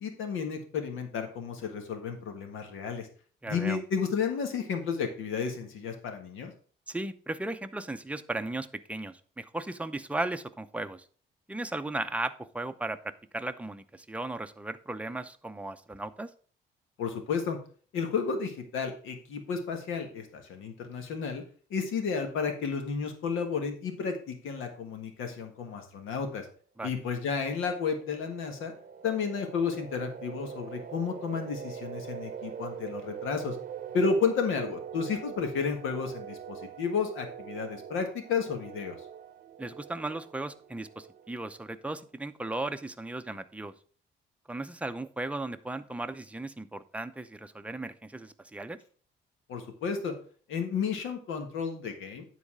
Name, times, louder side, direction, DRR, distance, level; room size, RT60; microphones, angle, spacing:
voice 1, 0.0-3.1 3.5-6.5 17.0-17.6 17.9-21.4 21.7-26.5 26.8-28.7 29.0-33.6 33.9-39.0 49.5-50.1 50.5-52.2, left 5 dB, 85° left, 6 dB, 1.5 m, -32 dB
voice 2, 3.4-3.8 6.9-11.0 11.5-16.3 26.8-26.9 39.6-43.7 44.5-48.8, right 2 dB, 5° right, 9 dB, 0.6 m, -36 dB
sound 1, 27.5-41.9, right 8 dB, 45° right, 0.7 m, -43 dB
9.6 x 4.1 x 4.9 m, 0.43 s
cardioid pair, 90°, 20 cm